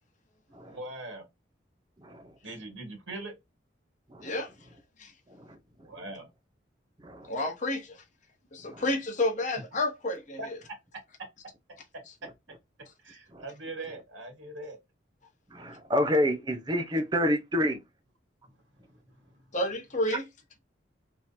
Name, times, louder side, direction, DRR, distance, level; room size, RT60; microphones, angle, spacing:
voice 1, 0.6-1.2 2.4-3.3 5.8-6.3 8.6-8.7 10.4-10.5 13.0-14.8, right 2 dB, 85° right, 1.5 m, -41 dB
voice 2, 7.3-8.0 8.5-10.6 19.5-20.3, left 1 dB, 40° left, 1.1 m, -30 dB
voice 3, 15.5-17.8, equal, 20° right, 0.7 m, -28 dB
3.6 x 3.0 x 2.7 m
head